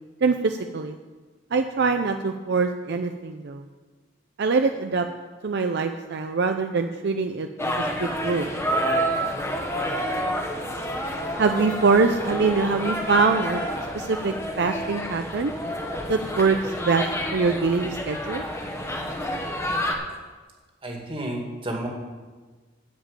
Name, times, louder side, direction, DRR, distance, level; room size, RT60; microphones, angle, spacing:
voice 1, 0.2-1.0 1.5-3.7 4.4-5.1 5.4-8.5 8.8-9.5 11.4-13.6 13.9-15.5 16.1-17.1 17.3-18.4, right 4 dB, 60° right, 6 dB, 0.5 m, -24 dB
sound 1, 7.6-19.9, equal, 15° left, 1.3 m, -29 dB
voice 2, 20.8-21.9, right 1 dB, 30° right, 0 dB, 2.2 m, -31 dB
12.5 x 5.2 x 8.7 m, 1.4 s
head